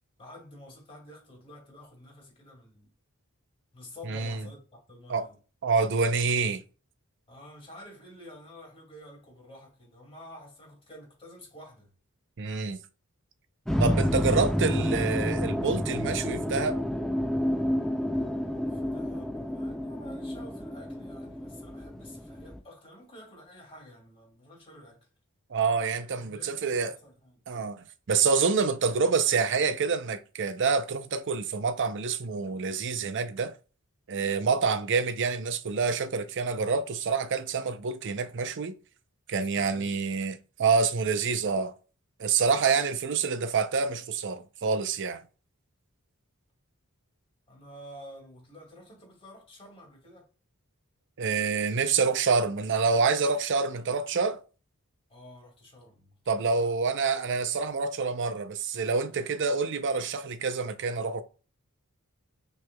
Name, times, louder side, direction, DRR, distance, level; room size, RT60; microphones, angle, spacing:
voice 1, 0.2-2.9 3.7-5.4 7.3-11.9 18.6-25.1 26.1-27.4 39.4-40.2 47.5-50.3 55.1-57.0, left 1 dB, 25° left, 2.1 m, -50 dB
voice 2, 4.1-4.4 5.1-5.3 5.6-6.6 12.4-12.8 13.8-16.8 25.5-26.9 27.5-33.5 34.1-38.7 39.3-41.7 42.2-45.2 51.2-54.4 56.3-61.2, right 5 dB, 55° right, 0.6 m, -27 dB
sound 1, 13.7-22.6, equal, ahead, 0.5 m, -29 dB
6.2 x 3.2 x 2.2 m
head